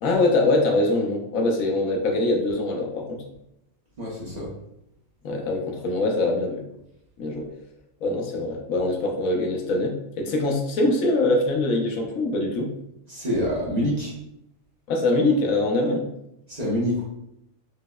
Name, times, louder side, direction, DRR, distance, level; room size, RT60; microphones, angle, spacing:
voice 1, 0.0-3.2 5.2-6.6 7.2-7.5 8.0-12.7 14.9-16.1, left 2 dB, 85° left, 1 dB, 1.1 m, -23 dB
voice 2, 4.0-4.5 13.1-14.1 16.5-17.0, equal, 40° right, -6 dB, 0.7 m, -26 dB
4.8 x 2.0 x 2.2 m, 0.82 s
omnidirectional pair, 1.4 m